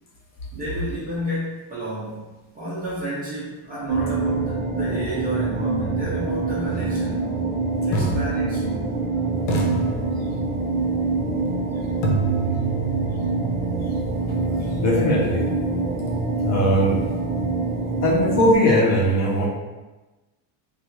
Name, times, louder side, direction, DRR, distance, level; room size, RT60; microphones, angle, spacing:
voice 1, 0.5-7.3 7.8-9.0, equal, 20° right, -9 dB, 0.3 m, -31 dB
sound 1, 3.9-18.5, right 3 dB, 90° right, 0.8 m, -25 dB
sound 2, 6.8-7.0 7.9-9.1 9.5-10.7 12.0-15.9, right 3 dB, 80° left, 0.8 m, -29 dB
voice 2, 14.8-15.5 16.4-17.0 18.0-19.5, equal, 35° left, -3 dB, 0.5 m, -19 dB
3.4 x 2.3 x 2.9 m, 1.1 s
cardioid pair, 165°, 49 cm